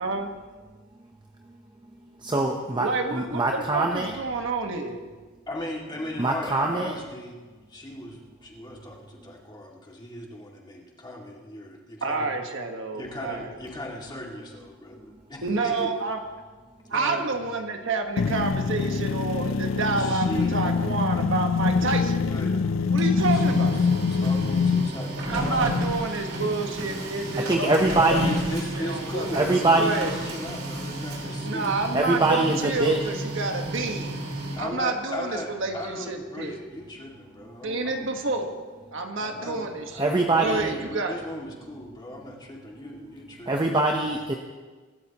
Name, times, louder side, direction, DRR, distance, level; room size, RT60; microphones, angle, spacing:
voice 1, 0.0-0.3 2.8-5.0 12.0-13.5 15.4-16.2 16.9-22.3 22.9-23.7 25.3-28.2 28.5-30.1 31.4-34.2 34.6-36.6 37.6-38.6 38.9-41.2, right 3 dB, 65° right, 4 dB, 1.4 m, -29 dB
voice 2, 2.2-4.1 6.2-6.9 27.4-28.4 29.3-30.1 31.9-33.0 40.0-40.7 43.5-44.4, right 2 dB, 20° right, 2 dB, 0.8 m, -23 dB
voice 3, 5.5-7.4 7.7-12.3 12.9-15.9 16.9-17.3 20.0-20.6 22.3-22.5 23.3-23.8 24.1-25.8 28.1-31.8 34.6-38.1 39.2-43.5, left 1 dB, 20° left, -2 dB, 2.2 m, -37 dB
sound 1, 18.2-24.9, left 5 dB, 70° left, 0.5 m, -24 dB
Printer, 22.8-34.9, equal, 85° right, 4.2 m, -32 dB
24.5 x 12.5 x 3.0 m, 1.4 s
head